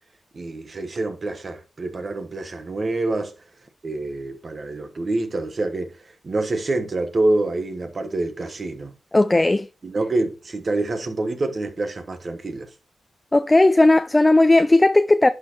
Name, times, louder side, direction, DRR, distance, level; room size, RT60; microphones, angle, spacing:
voice 1, 0.3-3.3 3.8-5.9 6.2-8.9 9.8-12.7, right 2 dB, 55° right, 1.2 m, -26 dB
voice 2, 9.1-9.7 13.3-15.3, left 2 dB, 25° left, 0.5 m, -16 dB
11.0 x 4.4 x 2.9 m
supercardioid pair, 45°, 0 cm